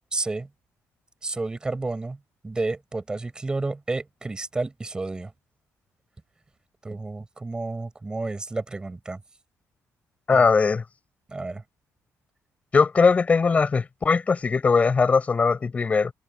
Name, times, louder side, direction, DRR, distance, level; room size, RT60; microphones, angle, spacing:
voice 1, 0.1-0.5 1.2-2.2 2.4-5.3 6.8-9.2 10.3-10.5 11.3-11.6, right 3 dB, 15° right, 7.2 m, -31 dB
voice 2, 10.3-10.8 12.7-16.1, left 4 dB, 25° left, 6.6 m, -20 dB
cardioid pair, 175°, 6 cm